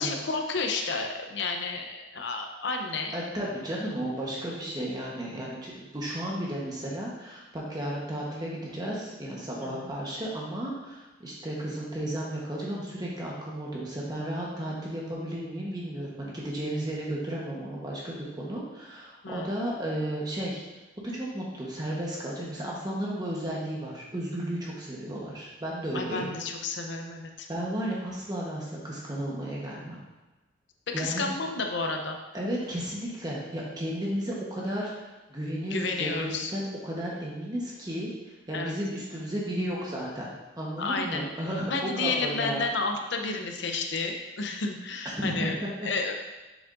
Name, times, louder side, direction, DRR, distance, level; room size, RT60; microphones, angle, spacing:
voice 1, 0.0-3.1 9.6-9.9 19.2-19.5 25.9-27.5 30.9-32.2 35.6-36.5 38.5-38.7 40.8-41.3 41.7-46.1, left 3 dB, 65° left, 4 dB, 0.6 m, -31 dB
voice 2, 3.1-20.6 21.1-26.3 27.5-30.0 30.9-31.3 32.3-40.3 40.6-42.6 45.2-45.9, right 1 dB, 20° right, -4 dB, 1.1 m, -33 dB
7.3 x 7.0 x 2.6 m, 1.1 s
head